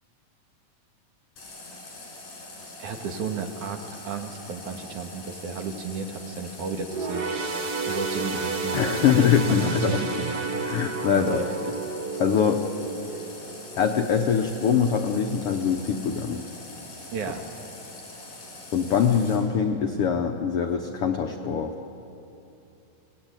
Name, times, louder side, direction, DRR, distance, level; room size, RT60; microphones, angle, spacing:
Water tap faucet, 1.4-19.4, left 2 dB, 65° left, 7.2 m, -43 dB
voice 1, 2.8-7.3 7.9-9.2 9.5-10.3 11.1-11.5 17.1-17.4, right 5 dB, 65° right, 3 dB, 2.9 m, -33 dB
roland sweep, 6.9-14.6 15.0-15.2 16.1-16.2, right 4 dB, 50° right, 1.2 m, -32 dB
voice 2, 8.7-10.0 10.6-11.5 12.2-12.6 13.7-16.4 18.7-21.7, left 7 dB, 85° left, 4 dB, 1.2 m, -23 dB
26.0 x 18.5 x 9.0 m, 2.9 s
omnidirectional pair, 4.0 m